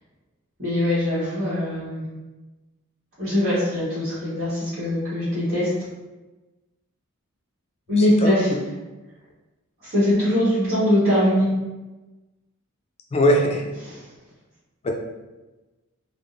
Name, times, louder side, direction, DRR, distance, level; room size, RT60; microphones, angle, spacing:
voice 1, 0.6-2.0 3.2-5.7 7.9-8.5 9.8-11.5 13.8-13.9, left 1 dB, 45° right, -14 dB, 1.2 m, -22 dB
voice 2, 8.0-8.6 13.1-13.6 14.8-14.9, equal, 30° left, 1 dB, 0.3 m, -21 dB
3.4 x 2.1 x 2.4 m, 1.1 s
head